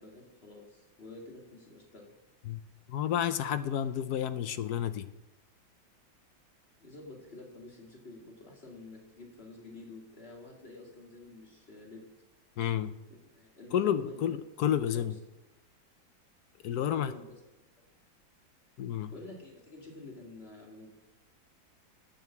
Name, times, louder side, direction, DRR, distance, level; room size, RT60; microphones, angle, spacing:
voice 1, 0.0-2.1 6.8-12.1 13.3-14.3 14.8-15.1 16.7-17.7 19.1-20.9, left 2 dB, 30° left, -1 dB, 2.8 m, -49 dB
voice 2, 2.9-5.1 12.6-12.9 13.7-15.2 16.6-17.1 18.8-19.1, left 10 dB, 65° left, 12 dB, 1.0 m, -30 dB
9.0 x 8.7 x 7.4 m, 0.97 s
omnidirectional pair, 2.1 m